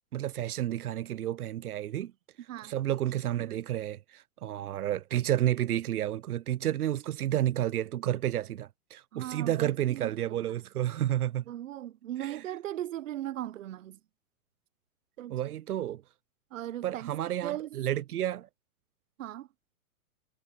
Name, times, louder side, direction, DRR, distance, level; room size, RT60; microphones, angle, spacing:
voice 1, 0.1-2.1 2.6-11.4 12.2-12.4 15.3-16.0 16.8-18.5, right 12 dB, 85° right, 0.8 m, -31 dB
voice 2, 9.1-10.1 10.4-10.6 11.5-14.0 15.2-15.4 16.5-17.1 17.4-17.7 19.2-19.5, right 13 dB, 60° right, 1.0 m, -38 dB
hypercardioid pair, 160°, 43 cm